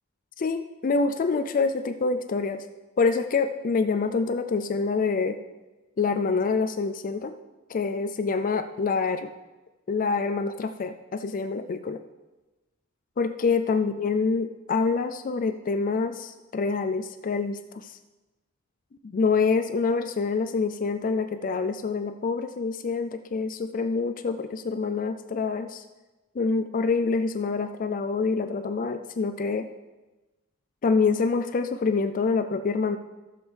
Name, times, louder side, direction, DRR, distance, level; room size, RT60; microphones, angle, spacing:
voice 1, 0.4-2.7 3.0-5.4 6.0-7.3 7.7-9.3 9.9-12.0 13.2-18.0 19.0-25.8 26.4-29.7 30.8-33.0, left 4 dB, 40° left, 8 dB, 0.4 m, -26 dB
14.0 x 7.2 x 3.4 m, 1.1 s
head